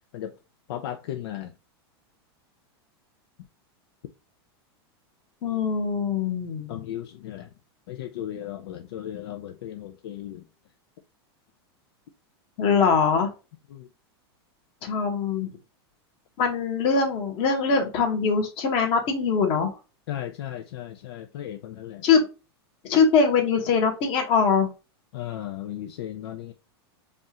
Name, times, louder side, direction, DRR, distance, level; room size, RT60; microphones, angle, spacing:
voice 1, 0.7-1.6 6.7-7.5 7.9-10.5 13.7-13.9 20.1-22.1 25.1-26.5, left 11 dB, 70° left, 0.6 m, -36 dB
voice 2, 5.4-6.8 12.6-13.3 14.8-15.5 16.4-19.8 22.0-22.3 22.8-24.7, left 5 dB, 45° left, 1.5 m, -22 dB
5.1 x 2.5 x 2.9 m
supercardioid pair, 135°, 14 cm